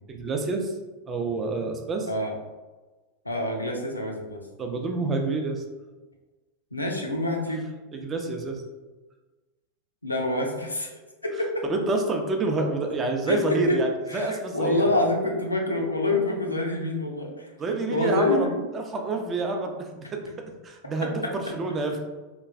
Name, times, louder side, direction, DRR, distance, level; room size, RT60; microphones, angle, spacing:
voice 1, 0.1-0.7 1.1-2.1 4.6-5.6 7.9-8.6 11.7-14.8 17.6-18.5 18.7-22.1, right 3 dB, 25° right, 3 dB, 0.4 m, -28 dB
voice 2, 3.2-4.4 6.7-7.6 10.0-10.9 11.2-11.6 13.3-13.8 14.1-18.6 21.2-21.3, left 2 dB, 85° left, 0 dB, 0.4 m, -26 dB
3.0 x 2.2 x 2.4 m, 1.2 s
figure-of-eight pair, 90°, 0 cm